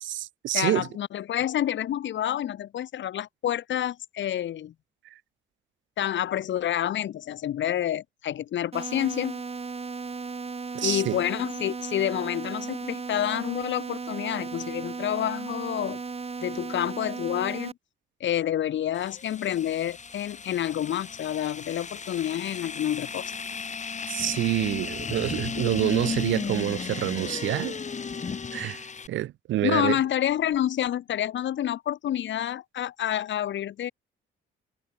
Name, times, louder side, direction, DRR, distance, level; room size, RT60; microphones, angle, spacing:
voice 1, 0.0-0.9 10.7-11.2 24.1-27.8 28.5-30.0, right 14 dB, 70° right, 0.6 m, -27 dB
voice 2, 0.5-4.7 6.0-9.4 10.8-16.0 16.4-17.7 18.2-23.3 29.6-33.9, left 11 dB, 70° left, 2.4 m, -28 dB
sound 1, 8.7-17.7, right 4 dB, 30° right, 3.2 m, -36 dB
sound 2, 18.9-29.1, left 5 dB, 35° left, 4.2 m, -35 dB
cardioid pair, 90°, 20 cm